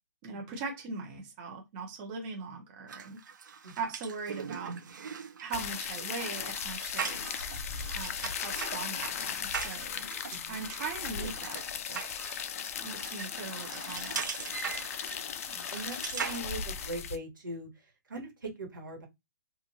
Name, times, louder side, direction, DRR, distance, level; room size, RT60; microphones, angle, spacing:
voice 1, 0.2-3.2 3.8-4.8 5.4-7.3 7.9-10.1 10.5-11.6 11.9-12.0 12.8-14.2, right 4 dB, 30° right, 0.8 m, -40 dB
sound 1, 2.9-16.4, right 6 dB, 70° right, 0.7 m, -41 dB
sound 2, 5.5-17.2, left 7 dB, 45° left, 0.4 m, -37 dB
voice 2, 10.3-10.6 11.2-11.3 15.3-19.1, right 2 dB, 90° right, 1.5 m, -41 dB
2.5 x 2.5 x 2.7 m
hypercardioid pair, 145°, 10 cm